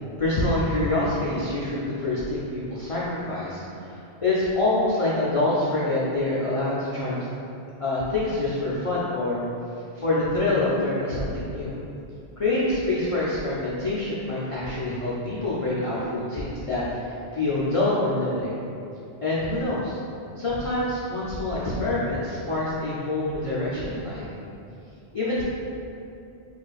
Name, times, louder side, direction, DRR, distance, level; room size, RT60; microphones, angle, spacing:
voice 1, 0.2-7.3 7.8-9.4 9.9-11.7 12.4-18.6 19.2-20.0 20.4-24.3 25.1-25.4, left 2 dB, 50° left, -8 dB, 0.4 m, -26 dB
4.0 x 2.5 x 2.3 m, 2.7 s
omnidirectional pair, 1.1 m